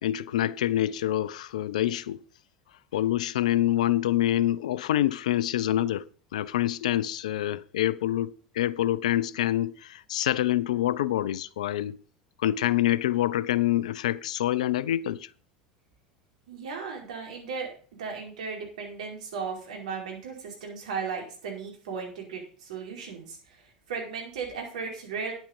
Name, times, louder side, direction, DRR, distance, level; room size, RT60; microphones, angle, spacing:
voice 1, 0.0-2.2 2.9-6.1 6.3-12.0 12.4-15.3, left 13 dB, 75° left, 0.6 m, -26 dB
voice 2, 16.5-17.7 18.0-23.6 23.9-25.3, right 5 dB, 70° right, 4.8 m, -36 dB
10.0 x 8.8 x 5.4 m
hypercardioid pair, 80°, 4 cm